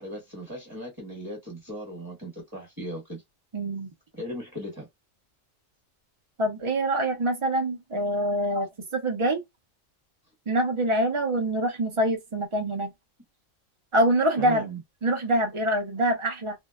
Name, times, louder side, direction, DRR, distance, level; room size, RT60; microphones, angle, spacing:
voice 1, 0.0-3.2 4.1-4.9 14.4-14.8, equal, 15° right, 1.1 m, -37 dB
voice 2, 3.5-3.9 6.4-8.7 8.9-9.4 10.5-12.9 13.9-14.7 15.0-16.5, right 1 dB, 35° right, 0.5 m, -25 dB
2.7 x 2.1 x 2.2 m
omnidirectional pair, 1.4 m